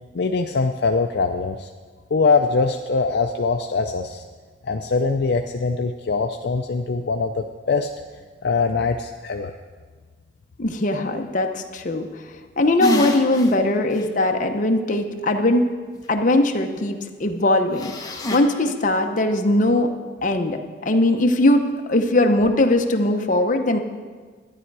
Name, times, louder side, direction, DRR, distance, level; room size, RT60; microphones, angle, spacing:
voice 1, 0.1-1.7 2.1-4.2 4.6-7.9 8.4-9.5, left 4 dB, 60° left, 4 dB, 0.4 m, -22 dB
voice 2, 10.6-12.1 12.6-15.6 16.1-19.9 20.2-23.8, left 1 dB, 45° left, 4 dB, 0.8 m, -20 dB
sound 1, 12.8-13.5 14.0-14.1 17.8-18.4, left 1 dB, 20° left, 1.0 m, -26 dB
12.0 x 9.8 x 4.7 m, 1.5 s
head